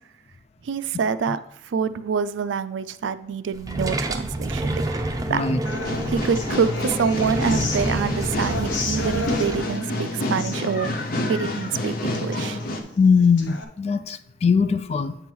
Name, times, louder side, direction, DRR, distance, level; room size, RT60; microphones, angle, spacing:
voice 1, 0.6-1.4 1.6-4.8 5.3-5.4 6.1-10.9 11.3-12.6, right 6 dB, 85° right, 13 dB, 0.4 m, -26 dB
sound 1, 3.5-9.6, right 2 dB, 20° right, 0.6 m, -28 dB
voice 2, 5.3-5.6 13.0-15.2, left 5 dB, 35° left, 12 dB, 0.3 m, -21 dB
Human voice / Acoustic guitar, 5.6-13.6, left 3 dB, 85° left, 0.7 m, -34 dB
sound 2, 5.8-12.8, left 1 dB, 50° left, 0.7 m, -28 dB
8.4 x 3.1 x 5.4 m, 0.75 s
head